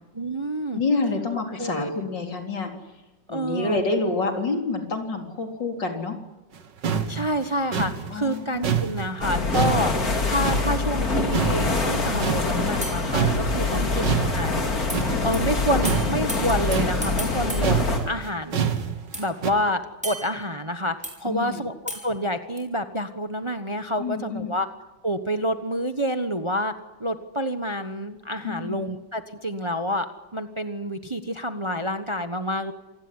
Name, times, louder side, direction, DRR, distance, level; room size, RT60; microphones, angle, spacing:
voice 1, 0.1-0.8 1.5-2.0 3.3-3.8 7.1-9.9 10.2-14.6 15.2-17.8 18.0-18.7 19.1-20.9 21.2-21.7 22.0-24.7 25.0-26.7 27.0-30.1 30.3-32.7, equal, 20° right, 9 dB, 1.1 m, -28 dB
voice 2, 0.7-2.7 3.3-6.2 8.1-9.0 13.6-13.9 21.2-21.6 24.0-24.5 28.4-28.8, left 3 dB, 80° left, 3 dB, 4.6 m, -28 dB
sound 1, 6.6-6.7 6.8-11.1 11.3-12.9 13.1-19.5, right 7 dB, 75° right, 2.3 m, -27 dB
sound 2, 9.2-18.0, left 3 dB, 55° left, 3.7 m, -25 dB
sound 3, 12.8-14.0 14.9-15.0 15.3-15.4 15.8-18.6 19.1-21.2 21.9-22.6, equal, 5° right, 6.4 m, -37 dB
27.0 x 19.0 x 9.7 m, 1.1 s
omnidirectional pair, 1.9 m